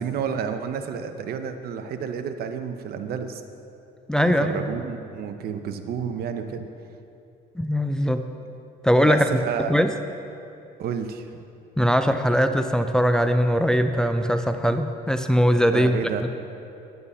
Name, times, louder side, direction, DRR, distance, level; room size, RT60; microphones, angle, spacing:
voice 1, 0.0-3.4 4.2-6.7 9.0-9.8 10.8-11.3 15.7-16.2, right 7 dB, 65° right, 8 dB, 0.8 m, -30 dB
voice 2, 4.1-4.6 7.6-8.3 8.8-9.3 9.7-9.9 11.8-16.0, equal, 5° left, 8 dB, 0.5 m, -21 dB
10.0 x 9.6 x 5.5 m, 2.7 s
cardioid pair, 110°, 17 cm